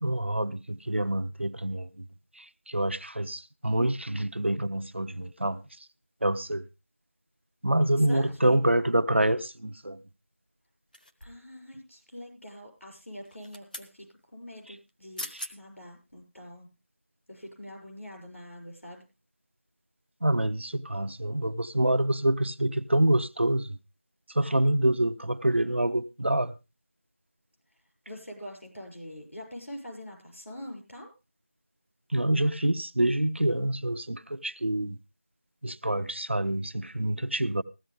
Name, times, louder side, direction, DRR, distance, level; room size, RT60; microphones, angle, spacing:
voice 1, 0.0-2.1 2.4-5.9 6.2-6.7 7.6-10.0 14.7-14.8 15.3-15.5 20.2-23.8 24.3-26.5 32.1-35.0 35.6-37.6, right 1 dB, 60° right, 0.7 m, -27 dB
voice 2, 8.1-8.6 11.2-16.7 17.3-19.0 28.1-31.1, equal, 75° left, 6.6 m, -44 dB
sound 1, 10.9-11.5 13.2-13.9 14.9-15.0 15.2-15.5 16.1-16.2, equal, 40° left, 1.0 m, -41 dB
15.5 x 12.5 x 3.5 m
figure-of-eight pair, 175°, 7 cm